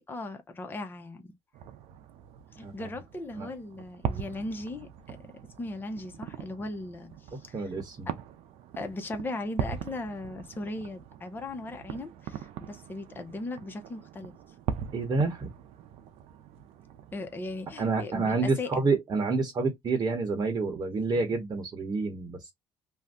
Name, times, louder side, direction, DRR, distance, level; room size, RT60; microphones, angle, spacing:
voice 1, 0.0-1.4 2.5-5.3 5.6-7.7 8.1-8.2 8.8-14.3 17.1-18.9, left 2 dB, 20° left, 0.7 m, -38 dB
sound 1, 1.5-18.2, right 9 dB, 75° right, 0.5 m, -41 dB
voice 2, 7.5-8.1 14.9-15.5 17.8-22.5, right 3 dB, 40° right, 1.0 m, -28 dB
2.6 x 2.2 x 3.5 m
cardioid pair, 95°, 10 cm